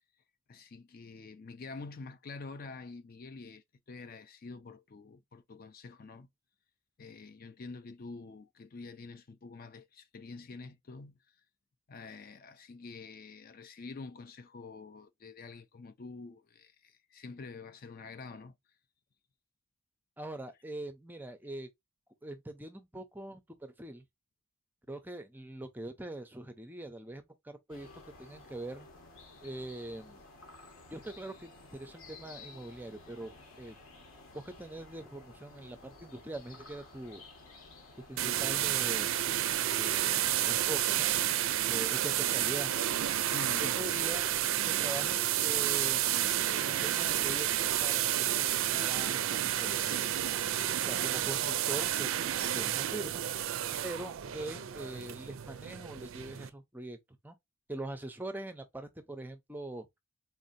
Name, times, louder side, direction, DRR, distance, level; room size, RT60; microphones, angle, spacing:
voice 1, 0.5-6.3 7.0-11.2 11.9-18.5 43.2-43.7, left 3 dB, 40° left, 0.4 m, -47 dB
voice 2, 20.2-21.7 22.2-24.0 24.9-27.9 28.2-28.9 29.4-30.2 30.9-33.8 34.3-37.2 38.1-39.2 39.7-41.1 41.7-42.7 43.6-44.4 44.7-46.0 46.5-50.1 50.8-53.2 53.8-57.0 57.2-57.4 57.7-60.0, right 1 dB, 10° right, 0.5 m, -43 dB
sound 1, 27.7-43.7, left 3 dB, 70° left, 1.2 m, -54 dB
sound 2, 38.2-56.5, right 12 dB, 65° right, 0.4 m, -31 dB
4.0 x 2.7 x 2.6 m
head